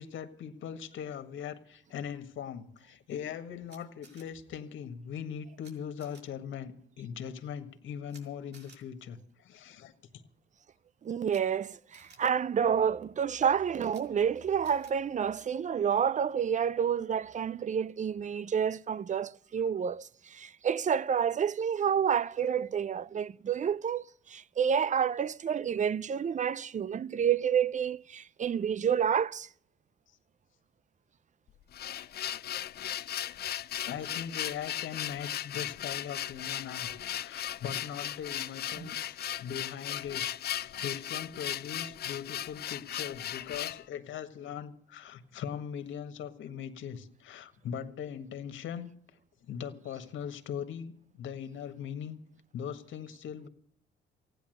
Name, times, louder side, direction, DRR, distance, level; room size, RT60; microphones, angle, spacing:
voice 1, 0.0-10.2 33.8-36.9 37.2-40.2 40.5-48.9 49.4-52.2 52.5-53.5, left 8 dB, 75° left, 1.7 m, -40 dB
Camera, 3.7-4.2 5.6-5.7 6.0-6.2 8.1-8.2 8.5-8.8 11.3-11.4 11.9-12.2 13.9-14.0 14.6-14.9, right 4 dB, 60° right, 5.9 m, -56 dB
voice 2, 11.0-29.5 38.8-38.9, right 8 dB, 40° right, 0.6 m, -29 dB
sound 1, 31.5-43.8, left 11 dB, 55° left, 0.5 m, -37 dB
15.5 x 10.0 x 7.8 m
cardioid pair, 90°, 20 cm